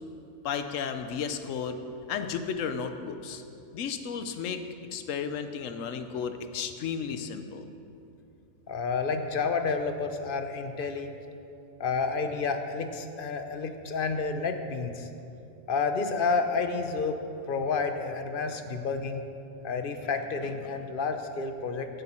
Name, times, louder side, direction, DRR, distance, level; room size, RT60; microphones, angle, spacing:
voice 1, 0.4-1.8 2.1-3.4 3.7-4.6 4.9-7.6, left 6 dB, 70° left, 8 dB, 1.1 m, -33 dB
voice 2, 8.7-11.1 11.8-15.1 15.7-17.2 17.5-19.2 19.6-21.9, left 4 dB, 50° left, 7 dB, 0.8 m, -30 dB
16.0 x 8.2 x 4.3 m, 2.7 s
omnidirectional pair, 1.4 m